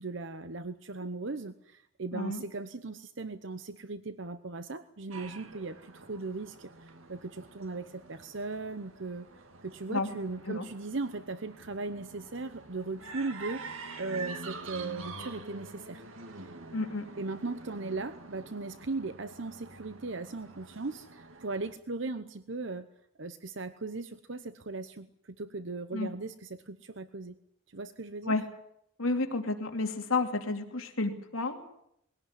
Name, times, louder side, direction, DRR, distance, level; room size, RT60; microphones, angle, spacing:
voice 1, 0.0-9.3 9.6-16.0 16.4-16.5 17.2-22.9 23.2-27.4 27.7-28.3, right 3 dB, 65° right, 11 dB, 0.9 m, -38 dB
voice 2, 2.1-2.4 9.9-10.1 10.5-10.7 16.7-17.1 25.9-26.1 28.2-28.4 29.0-31.7, left 3 dB, 85° left, 4 dB, 2.8 m, -31 dB
sound 1, 5.1-21.7, right 3 dB, 80° right, 2.2 m, -47 dB
21.0 x 17.0 x 9.8 m, 0.75 s
head